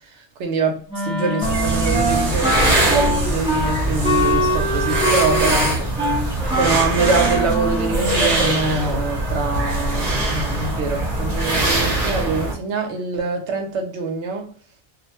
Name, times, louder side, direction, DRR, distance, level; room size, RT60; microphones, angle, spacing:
voice 1, 0.4-0.7 1.0-5.9 6.3-14.5, right 3 dB, 85° right, 1.0 m, -24 dB
Wind instrument woodwind instrument, 0.9-8.5, equal, 10° right, 0.4 m, -23 dB
sound 1, 1.4-12.5, right 2 dB, 40° right, 0.8 m, -22 dB
2.4 x 2.1 x 2.8 m
omnidirectional pair, 1.1 m